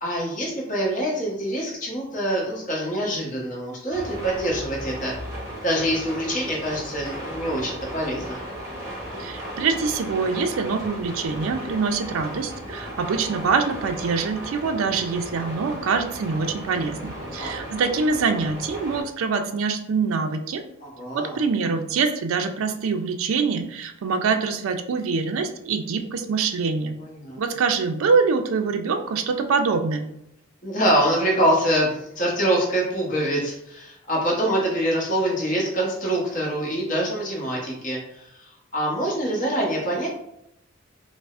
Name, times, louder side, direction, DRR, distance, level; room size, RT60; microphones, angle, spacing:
voice 1, 0.0-5.1 5.6-8.4 17.4-17.5 20.8-21.3 27.0-27.4 30.6-38.3 38.7-40.1, right 1 dB, 40° left, -3 dB, 0.9 m, -25 dB
sound 1, 3.9-19.0, equal, 15° right, 0.8 m, -36 dB
voice 2, 9.2-20.6 21.1-27.0 27.4-30.1, right 5 dB, 80° right, 7 dB, 0.4 m, -24 dB
4.6 x 2.0 x 2.4 m, 0.80 s
head